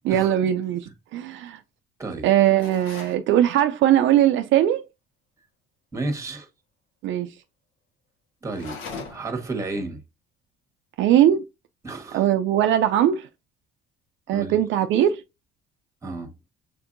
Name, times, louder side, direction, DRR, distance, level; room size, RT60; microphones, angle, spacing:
voice 1, 0.1-1.6 2.2-4.8 7.0-7.3 11.0-11.4 12.1-13.3 14.3-15.2, right 11 dB, 65° right, 0.4 m, -20 dB
voice 2, 2.0-2.3 5.9-6.5 8.4-8.8 9.1-10.0 11.8-12.3 14.3-14.6 16.0-16.3, right 2 dB, 15° right, 1.2 m, -32 dB
sound 1, 2.6-3.2 8.5-9.4, left 4 dB, 70° left, 1.2 m, -38 dB
6.6 x 2.6 x 2.5 m
cardioid pair, 105°, 21 cm